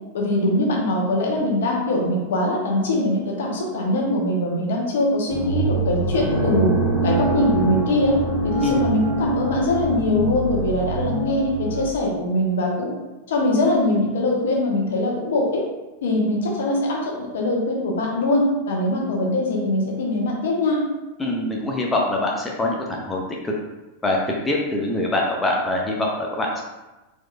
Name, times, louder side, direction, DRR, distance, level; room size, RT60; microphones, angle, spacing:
voice 1, 0.1-6.8 7.0-8.2 8.4-12.9 13.3-15.6 16.0-20.8, left 1 dB, 60° left, -1 dB, 1.0 m, -22 dB
sound 1, 5.3-11.9, right 2 dB, 35° left, 1.4 m, -24 dB
voice 2, 21.2-23.5 24.0-24.2 24.4-26.6, left 2 dB, 15° left, -2 dB, 0.6 m, -24 dB
4.5 x 4.1 x 2.4 m, 1.1 s
figure-of-eight pair, 90°, 0 cm